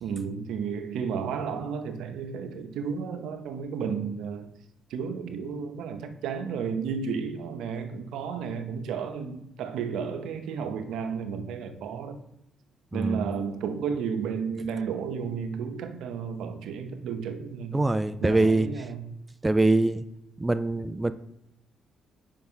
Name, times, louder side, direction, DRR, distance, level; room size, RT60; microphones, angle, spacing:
voice 1, 0.0-4.5 4.9-12.2 12.9-17.8 18.2-19.0, right 6 dB, 85° right, 0.7 m, -32 dB
voice 2, 12.9-13.3 17.7-18.7 19.4-20.0 20.4-21.1, right 2 dB, 15° right, 0.3 m, -23 dB
5.3 x 4.7 x 5.5 m
cardioid pair, 90°, 0 cm